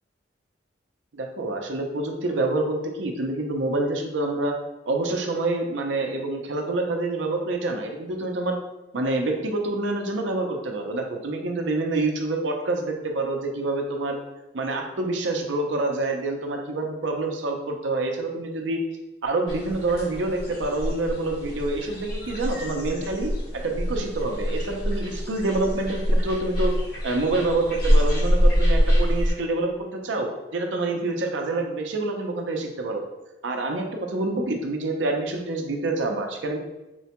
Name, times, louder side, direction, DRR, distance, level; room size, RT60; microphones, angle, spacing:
voice 1, 1.1-4.6 4.9-8.6 8.9-14.2 14.5-18.8 19.2-23.3 23.6-26.7 27.0-33.0 33.4-36.6, right 2 dB, 85° right, 3 dB, 0.6 m, -27 dB
sound 1, 19.5-29.3, equal, 55° left, 1.4 m, -25 dB
4.4 x 2.1 x 2.9 m, 1.0 s
head